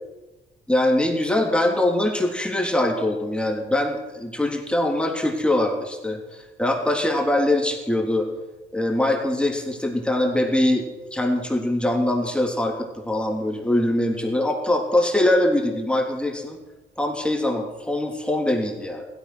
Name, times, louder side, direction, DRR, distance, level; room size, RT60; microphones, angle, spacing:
voice 1, 0.7-8.3 8.7-10.9 11.1-16.6 17.0-19.0, left 1 dB, 5° left, 0 dB, 3.2 m, -23 dB
16.0 x 13.5 x 6.3 m, 1.1 s
cardioid pair, 90°, 20 cm